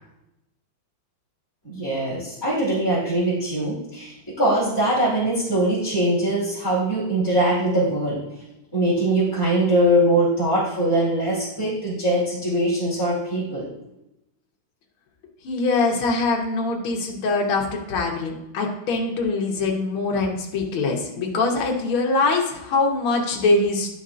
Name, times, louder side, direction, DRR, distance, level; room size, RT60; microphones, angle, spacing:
voice 1, 1.6-8.2 8.7-13.7, right 1 dB, 10° left, -10 dB, 2.7 m, -22 dB
voice 2, 15.4-24.0, left 3 dB, 90° left, 1 dB, 1.9 m, -23 dB
11.0 x 5.4 x 2.5 m, 0.90 s
omnidirectional pair, 2.3 m